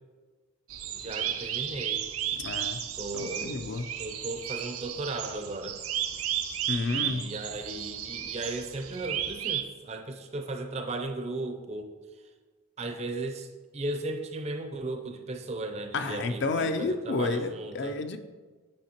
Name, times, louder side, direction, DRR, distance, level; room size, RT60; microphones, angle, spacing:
sound 1, 0.7-9.6, right 10 dB, 85° right, 0.6 m, -34 dB
voice 1, 0.9-2.1 3.0-3.6 4.0-5.8 6.9-11.9 12.8-18.0, right 2 dB, 30° right, 6 dB, 0.5 m, -36 dB
voice 2, 2.4-2.8 3.1-3.9 6.7-7.3 15.9-18.2, left 3 dB, 50° left, 8 dB, 0.4 m, -30 dB
8.6 x 5.7 x 2.9 m, 1.4 s
head